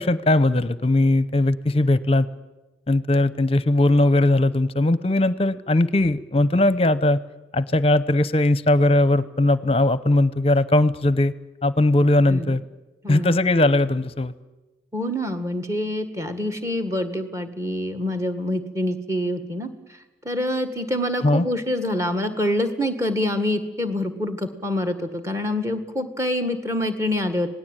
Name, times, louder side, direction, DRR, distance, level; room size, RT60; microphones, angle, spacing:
voice 1, 0.0-2.3 2.9-7.2 7.5-11.3 11.6-12.6 13.1-14.3 21.2-21.4, left 2 dB, 30° left, 15 dB, 0.7 m, -19 dB
voice 2, 13.0-13.4 14.9-19.7 20.2-27.5, left 1 dB, 15° right, 6 dB, 1.7 m, -26 dB
26.5 x 19.0 x 9.0 m, 1.1 s
head